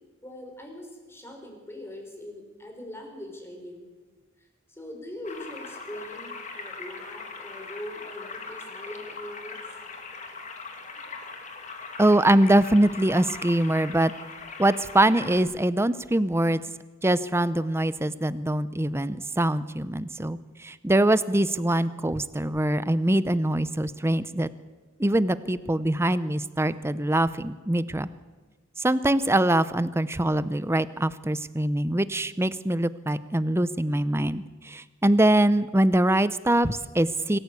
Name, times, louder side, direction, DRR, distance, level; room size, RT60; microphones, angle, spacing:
voice 1, 0.2-3.9 4.7-9.6, left 1 dB, 15° left, 2 dB, 4.7 m, -41 dB
sound 1, 5.2-15.4, left 4 dB, 40° left, 2.4 m, -40 dB
voice 2, 12.0-14.1 14.6-16.6 17.0-24.5 25.0-28.1 28.8-37.4, right 1 dB, 15° right, 15 dB, 0.7 m, -23 dB
25.5 x 14.5 x 8.2 m, 1.3 s
head